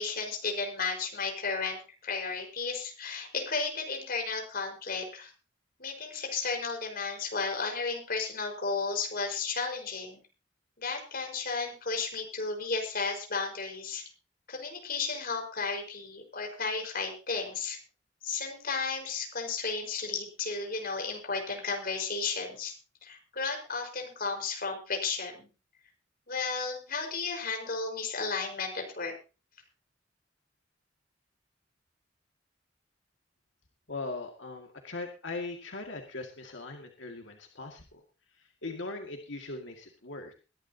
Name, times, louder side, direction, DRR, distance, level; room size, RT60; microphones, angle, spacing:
voice 1, 0.0-5.3 5.8-10.2 10.8-14.0 14.5-17.8 18.2-22.7 23.0-25.5 26.3-29.1, left 4 dB, 50° left, 3 dB, 4.8 m, -33 dB
voice 2, 33.9-38.0 38.4-40.3, left 3 dB, 90° left, 2 dB, 2.1 m, -40 dB
22.0 x 11.5 x 2.8 m, 0.32 s
head